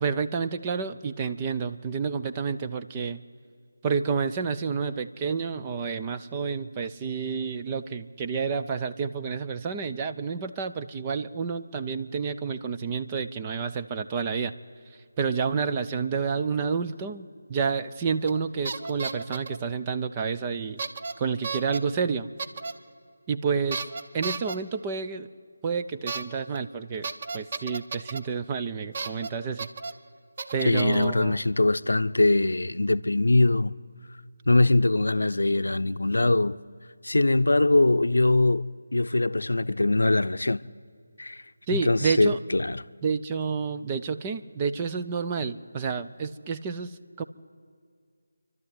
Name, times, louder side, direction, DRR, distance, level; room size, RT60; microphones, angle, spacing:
voice 1, 0.0-3.2 3.8-14.5 15.2-20.8 21.2-22.3 23.3-23.8 24.1-25.3 25.6-27.1 27.3-29.7 30.5-31.4 41.7-42.4 43.0-46.9 47.2-47.3, right 5 dB, 20° right, 0.6 m, -29 dB
sound 1, 18.3-18.4 18.6-19.6 20.8-21.1 21.4-21.8 22.4-22.7 23.7-24.6 26.1-26.2 26.5-26.6 27.0-28.2 28.9-29.3 29.6-29.9 30.4-31.1, right 4 dB, 40° right, 1.0 m, -33 dB
voice 2, 30.6-33.7 34.5-36.6 37.0-38.6 38.9-40.6 41.2-41.4 41.7-42.8, left 2 dB, 80° left, 0.6 m, -22 dB
28.5 x 12.0 x 9.6 m
figure-of-eight pair, 165°, 0 cm